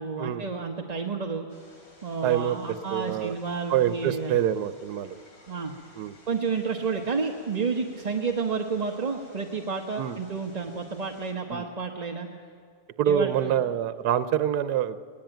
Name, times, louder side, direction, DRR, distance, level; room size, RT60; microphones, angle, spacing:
voice 1, 0.0-1.5 2.0-4.4 5.5-5.7 6.3-12.3 13.1-13.5, right 5 dB, 30° right, 3 dB, 0.9 m, -30 dB
sound 1, 1.5-11.3, left 2 dB, 65° left, 4.0 m, -56 dB
voice 2, 2.2-3.3 3.7-5.2 6.0-6.1 10.0-10.2 11.5-11.6 13.0-15.0, right 10 dB, 85° right, 13 dB, 1.3 m, -26 dB
19.5 x 19.0 x 9.0 m, 2.3 s
omnidirectional pair, 1.6 m